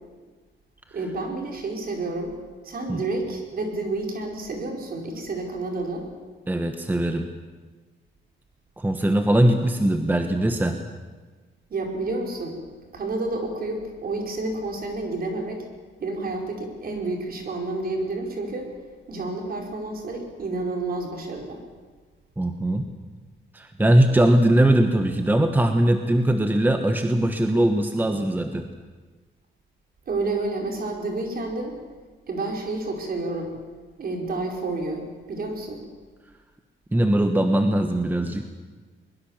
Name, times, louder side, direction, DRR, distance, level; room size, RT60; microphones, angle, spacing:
voice 1, 0.9-2.4 2.6-6.1 11.7-12.6 12.9-15.7 16.0-18.7 19.1-21.6 30.1-31.8 32.3-33.5 34.0-35.8, right 2 dB, 50° right, 2 dB, 5.0 m, -30 dB
voice 2, 6.5-7.3 8.8-10.8 22.4-22.9 23.5-28.7 36.9-38.5, right 1 dB, 10° right, 6 dB, 1.2 m, -21 dB
23.0 x 21.5 x 7.4 m, 1.4 s
cardioid pair, 130°, 20 cm